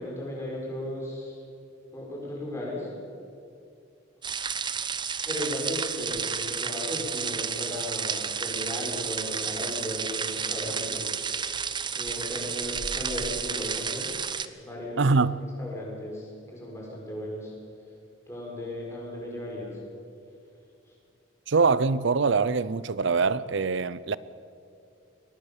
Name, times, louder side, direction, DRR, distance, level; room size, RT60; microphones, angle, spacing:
voice 1, 0.0-1.4 1.9-2.9 5.2-11.1 11.9-14.1 14.6-15.2 15.6-17.5 18.3-19.8 20.9-21.0, left 1 dB, 15° left, 6.5 m, -36 dB
sound 1, 4.2-14.5, right 6 dB, 25° right, 0.8 m, -31 dB
voice 2, 15.0-15.4 21.5-24.2, right 4 dB, 65° right, 0.6 m, -23 dB
22.5 x 18.5 x 7.3 m
head